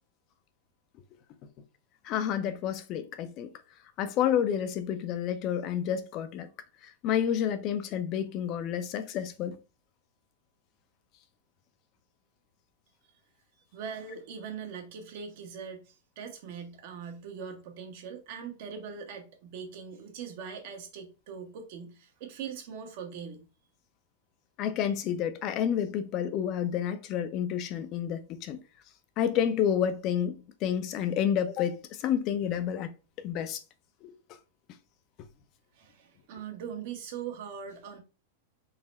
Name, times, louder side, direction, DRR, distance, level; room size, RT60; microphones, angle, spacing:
voice 1, 2.0-3.5 4.0-6.5 6.8-9.6 24.6-28.6 29.2-32.9 33.2-33.6 34.0-34.1, left 9 dB, 45° left, 0.5 m, -29 dB
voice 2, 13.7-23.5 35.7-38.0, right 7 dB, 60° right, 1.0 m, -41 dB
3.8 x 2.1 x 4.1 m
hypercardioid pair, 125°, 0 cm